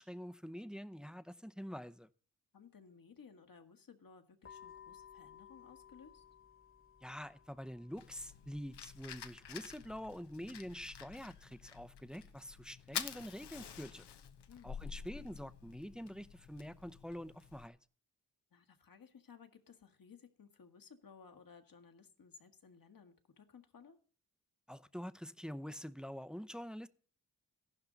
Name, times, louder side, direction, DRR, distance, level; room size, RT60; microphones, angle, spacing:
voice 1, 0.0-2.1 7.0-14.1 14.6-17.8 24.7-26.9, equal, ahead, 0.7 m, -46 dB
voice 2, 2.5-6.2 14.5-15.1 18.5-24.0, left 6 dB, 55° left, 1.8 m, -59 dB
sound 1, 4.4-11.4, left 8 dB, 35° left, 1.6 m, -60 dB
Fire, 8.0-17.7, left 8 dB, 80° left, 1.0 m, -49 dB
14.5 x 11.5 x 4.0 m
cardioid pair, 55°, 40 cm